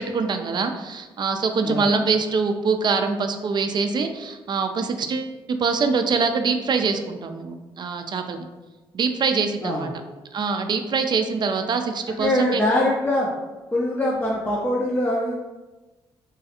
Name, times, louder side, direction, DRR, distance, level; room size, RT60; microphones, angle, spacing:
voice 1, 0.0-8.4 8.9-9.9 10.3-12.6, right 4 dB, 45° right, 7 dB, 0.4 m, -24 dB
voice 2, 9.6-9.9 12.1-13.3 13.7-15.3, left 1 dB, 20° left, -4 dB, 0.5 m, -23 dB
3.1 x 2.3 x 2.8 m, 1.2 s
supercardioid pair, 60°, 10 cm